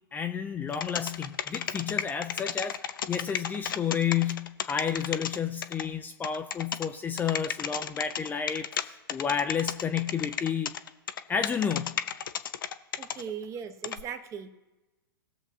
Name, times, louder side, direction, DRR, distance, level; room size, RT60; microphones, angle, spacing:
voice 1, 0.1-2.8 3.1-10.7 11.3-12.0, left 7 dB, 15° left, 7 dB, 0.5 m, -31 dB
sound 1, 0.7-5.8 6.2-6.9 7.2-8.8 9.1-13.2 13.8-14.0, left 8 dB, 65° left, 0.6 m, -32 dB
voice 2, 13.0-14.5, right 7 dB, 25° right, 8 dB, 1.0 m, -38 dB
20.0 x 7.2 x 2.7 m, 1.1 s
figure-of-eight pair, 105°, 12 cm